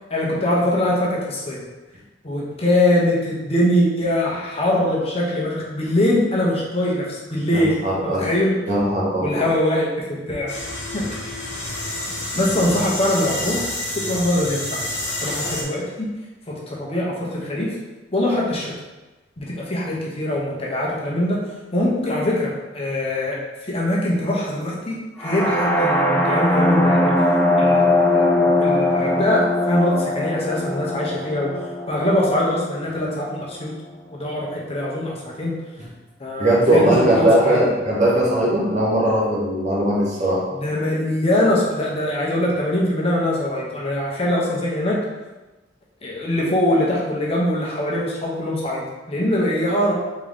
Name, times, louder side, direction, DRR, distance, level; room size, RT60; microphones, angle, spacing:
voice 1, 0.1-1.6 2.2-8.6 9.2-10.5 10.9-11.3 12.3-13.7 13.9-14.8 15.2-16.1 16.5-17.8 18.1-18.7 19.4-23.4 23.6-27.1 27.6-33.7 34.1-35.5 36.2-37.7 40.5-45.0 46.0-49.9, left 1 dB, 35° left, -4 dB, 0.9 m, -22 dB
voice 2, 7.5-8.3 8.7-9.4 36.4-40.4, right 1 dB, 40° right, -5 dB, 1.2 m, -19 dB
sound 1, 10.5-15.6, left 1 dB, 70° left, 1.0 m, -28 dB
sound 2, 25.2-33.1, left 1 dB, 10° left, 0.5 m, -20 dB
3.8 x 3.7 x 3.4 m, 1.1 s
head